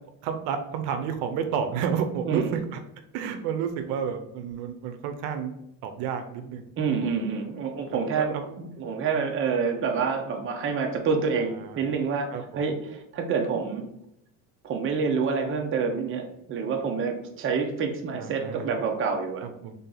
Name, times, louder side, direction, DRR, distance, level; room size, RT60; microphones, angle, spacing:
voice 1, 0.2-2.8 3.1-5.5 5.8-6.6 7.0-7.1 7.9-8.5 11.6-11.8 12.3-12.4 18.1-18.7 19.4-19.7, right 7 dB, 80° right, 7 dB, 0.7 m, -30 dB
voice 2, 2.2-2.5 6.8-13.9 14.6-19.5, right 5 dB, 35° right, 3 dB, 0.7 m, -27 dB
3.7 x 2.8 x 3.8 m, 0.80 s
cardioid pair, 135°, 38 cm